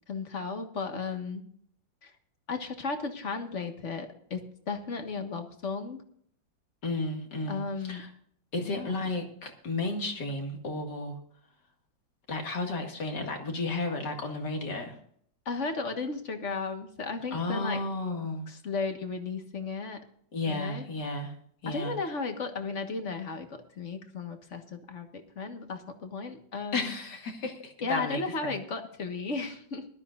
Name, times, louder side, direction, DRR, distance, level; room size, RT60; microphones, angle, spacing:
voice 1, 0.1-1.5 2.0-2.1 2.5-6.0 7.5-8.0 8.6-9.0 15.4-17.8 18.5-20.0 20.4-20.8 21.6-26.9 27.8-29.9, left 4 dB, 40° left, 6 dB, 1.7 m, -35 dB
voice 2, 6.8-8.1 8.5-11.2 12.3-15.0 17.3-18.4 20.3-21.3 21.6-21.9 26.7-28.5, left 2 dB, 65° left, 3 dB, 2.7 m, -33 dB
20.5 x 12.5 x 2.5 m, 0.64 s
omnidirectional pair, 2.0 m